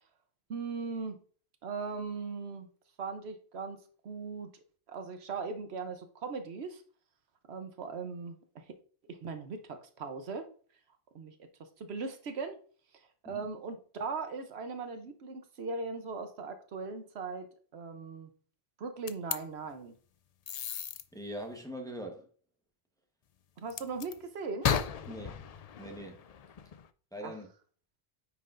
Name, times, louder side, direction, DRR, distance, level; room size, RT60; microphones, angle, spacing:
voice 1, 0.5-1.2 1.6-2.7 3.0-4.5 4.9-6.8 7.5-8.7 9.1-10.5 11.1-11.3 11.8-12.6 13.2-18.3 18.8-19.9 23.6-24.7 27.2-27.3, right 4 dB, 80° right, 1.1 m, -39 dB
sound 1, 19.1-19.4 20.5-21.0 23.7-24.1 24.6-26.9, left 8 dB, 55° left, 0.4 m, -34 dB
voice 2, 21.1-22.3 25.1-25.5 25.8-26.2 27.1-27.5, equal, 5° left, 1.0 m, -42 dB
9.2 x 6.1 x 2.5 m
omnidirectional pair, 1.1 m